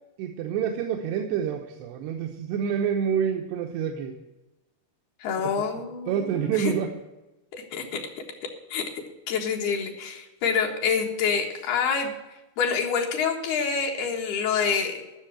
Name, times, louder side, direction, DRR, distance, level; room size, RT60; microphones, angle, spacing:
voice 1, 0.2-4.1 6.1-6.9, right 8 dB, 90° right, 3 dB, 3.1 m, -27 dB
voice 2, 5.2-6.7 7.5-12.1 12.6-15.0, left 6 dB, 70° left, 1 dB, 3.4 m, -27 dB
12.5 x 6.6 x 8.8 m, 1.0 s
omnidirectional pair, 4.7 m